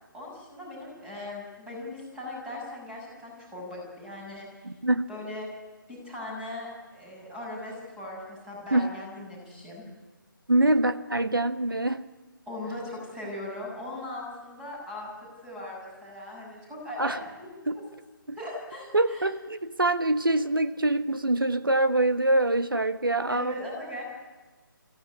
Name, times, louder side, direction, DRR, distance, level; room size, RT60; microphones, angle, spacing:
voice 1, 0.1-4.5 5.1-5.5 5.9-9.8 12.5-15.1 15.4-17.8 18.4-19.2 23.3-24.0, left 1 dB, 5° right, -3 dB, 7.2 m, -39 dB
voice 2, 4.6-5.1 8.7-8.9 10.5-12.0 17.0-17.2 17.7-17.8 18.3-18.4 18.9-23.5, right 2 dB, 75° right, 9 dB, 1.5 m, -24 dB
23.0 x 15.5 x 9.9 m, 1.2 s
figure-of-eight pair, 150°, 12 cm